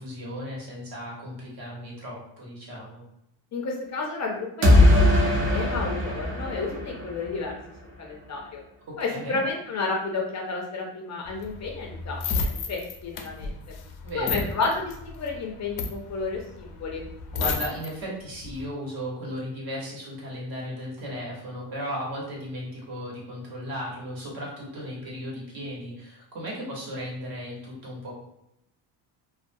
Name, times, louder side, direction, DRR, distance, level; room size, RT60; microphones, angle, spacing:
voice 1, 0.0-3.0 9.1-9.4 14.0-14.4 17.3-28.2, equal, 50° right, -4 dB, 1.1 m, -35 dB
voice 2, 3.5-7.6 8.0-8.6 9.0-13.5 14.1-17.0, left 3 dB, 40° left, 0 dB, 0.5 m, -31 dB
sound 1, 4.6-7.5, left 1 dB, 30° right, 0.5 m, -20 dB
sound 2, 11.3-17.9 18.3-18.6, left 4 dB, 85° left, 0.6 m, -31 dB
2.3 x 2.3 x 2.6 m, 0.80 s
cardioid pair, 125°, 47 cm